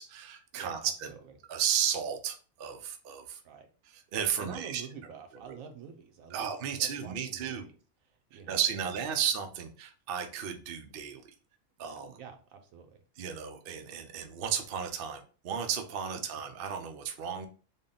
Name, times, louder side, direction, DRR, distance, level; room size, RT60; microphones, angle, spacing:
voice 1, 0.0-1.1 1.5-3.4 3.9-4.8 5.5-5.6 6.3-7.6 8.5-11.2 11.8-12.2 13.2-17.5, right 8 dB, 60° right, 5 dB, 0.6 m, -34 dB
voice 2, 0.5-1.3 3.4-3.7 4.4-7.7 8.0-9.2 11.8-13.0, right 7 dB, 80° right, 6 dB, 1.1 m, -48 dB
3.6 x 2.2 x 3.7 m, 0.37 s
omnidirectional pair, 1.4 m